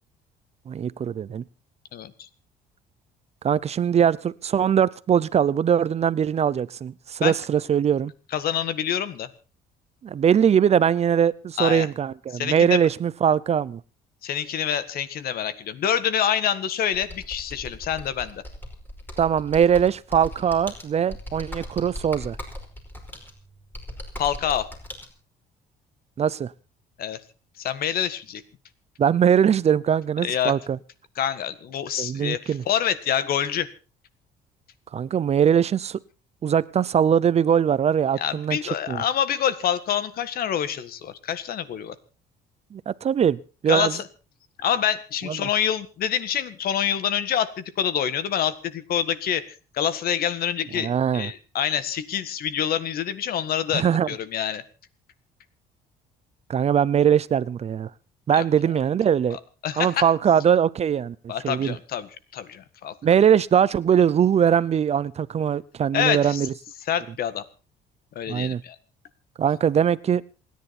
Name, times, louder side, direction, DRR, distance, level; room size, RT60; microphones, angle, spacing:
voice 1, 0.7-1.4 3.4-8.1 10.0-13.8 19.2-22.4 26.2-26.5 29.0-30.8 32.0-32.6 34.9-36.0 36.4-38.6 38.9-39.0 42.7-44.0 45.2-45.5 50.8-51.3 53.7-54.1 56.5-57.9 58.3-59.4 59.8-61.2 61.4-61.7 63.0-66.5 68.3-68.6 69.4-70.2, right 8 dB, 40° right, 0.7 m, -21 dB
voice 2, 1.9-2.3 7.2-7.3 8.3-9.3 11.6-11.9 12.3-12.8 14.2-18.4 24.2-24.7 27.0-27.2 27.6-28.4 30.2-30.5 31.2-33.7 38.2-42.0 43.7-44.0 44.6-49.4 49.7-54.6 58.3-58.4 59.6-60.0 61.3-62.9 65.9-66.4 66.9-67.4 68.2-68.8, left 9 dB, 65° left, 1.8 m, -26 dB
Computer keyboard, 16.9-25.1, left 1 dB, 10° left, 5.0 m, -39 dB
27.5 x 10.5 x 4.3 m
cardioid pair, 110°, 17 cm